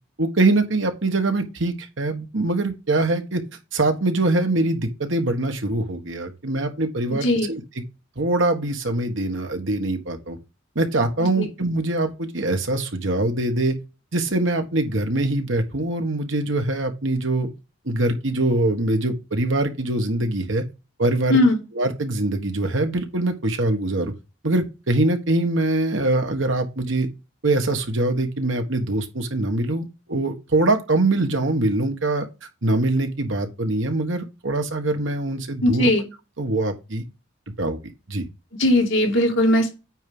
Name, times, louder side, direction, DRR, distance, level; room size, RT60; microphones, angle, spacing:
voice 1, 0.2-3.4 3.7-7.8 8.2-10.4 10.7-13.8 14.1-17.5 17.8-20.6 21.0-21.4 21.7-24.1 24.4-27.1 27.4-32.3 32.6-35.9 36.4-37.0 37.6-37.8 38.1-38.2, right 2 dB, 70° right, 1.6 m, -23 dB
voice 2, 35.6-36.0 38.6-39.7, left 1 dB, 65° left, 2.5 m, -18 dB
9.2 x 3.7 x 5.4 m
head